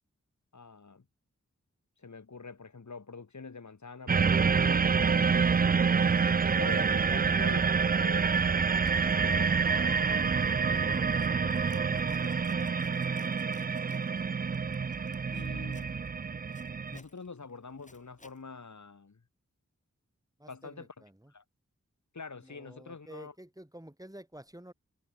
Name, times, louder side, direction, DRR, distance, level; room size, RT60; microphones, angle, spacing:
voice 1, 0.5-1.0 2.0-5.5 6.6-8.8 9.2-13.4 15.3-16.0 16.9-19.2 20.5-21.0 21.3-21.4 22.1-23.3, left 4 dB, 70° left, 3.1 m, -46 dB
sound 1, 4.1-17.0, right 5 dB, 30° right, 0.4 m, -27 dB
Zipper (clothing), 5.3-5.4 6.0-7.4 7.6-7.9 8.3-18.4, left 2 dB, 25° left, 3.6 m, -60 dB
voice 2, 20.4-21.3 22.4-24.7, right 1 dB, 10° right, 5.8 m, -50 dB
wide cardioid pair, 75°, 29 cm